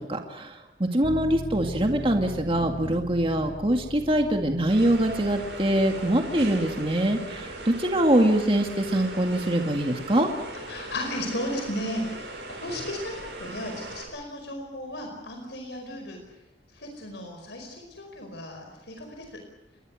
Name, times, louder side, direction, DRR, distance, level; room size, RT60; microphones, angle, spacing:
voice 1, 0.0-10.3, right 1 dB, 30° right, 3 dB, 2.2 m, -24 dB
sound 1, 1.0-13.5 13.9-14.0, equal, 50° left, 5.1 m, -43 dB
sound 2, 4.7-14.0, right 2 dB, 70° right, 7.8 m, -39 dB
voice 2, 10.7-16.4 16.7-19.4, left 1 dB, 75° left, 3 dB, 5.0 m, -35 dB
30.0 x 22.5 x 6.4 m, 0.88 s
head